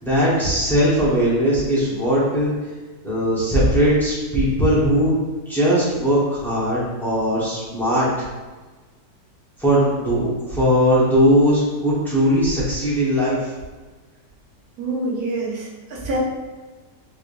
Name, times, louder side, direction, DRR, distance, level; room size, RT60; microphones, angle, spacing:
voice 1, 0.0-2.5 3.0-5.1 5.5-8.2 9.6-13.5, equal, ahead, -9 dB, 0.8 m, -19 dB
voice 2, 14.8-16.2, right 2 dB, 65° right, -4 dB, 1.3 m, -26 dB
3.6 x 3.3 x 2.5 m, 1.3 s
omnidirectional pair, 1.8 m